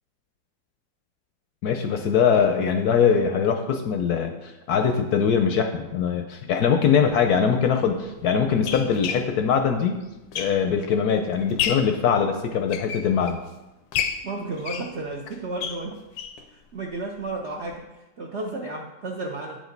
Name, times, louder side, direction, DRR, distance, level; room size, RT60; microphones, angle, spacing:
voice 1, 1.6-10.0 10.4-13.4, left 7 dB, 70° left, 5 dB, 1.0 m, -22 dB
sound 1, 7.0-7.2 8.0-10.9 11.3-12.0 12.5-13.5 13.9-16.5 16.8-16.9 17.2-17.3 17.7-17.8, left 8 dB, 90° left, 1.4 m, -31 dB
voice 2, 14.0-15.9 16.5-19.6, right 2 dB, 65° right, 0 dB, 0.7 m, -33 dB
8.9 x 5.1 x 3.9 m, 1.0 s
omnidirectional pair, 2.0 m